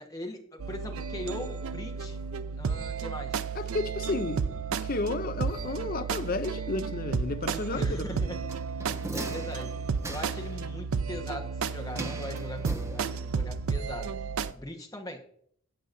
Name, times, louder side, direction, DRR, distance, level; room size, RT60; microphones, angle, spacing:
voice 1, 0.0-2.2 2.5-3.4 7.7-8.4 8.8-9.8 10.1-14.2 14.5-15.2, left 1 dB, 15° left, 1.2 m, -40 dB
sound 1, 0.6-14.5, right 5 dB, 90° right, 0.5 m, -33 dB
voice 2, 3.5-4.4 4.7-8.1, left 3 dB, 40° left, 0.5 m, -32 dB
sound 2, 8.5-10.6 12.0-13.4 13.7-13.8, right 2 dB, 15° right, 0.5 m, -40 dB
14.5 x 7.8 x 2.6 m
head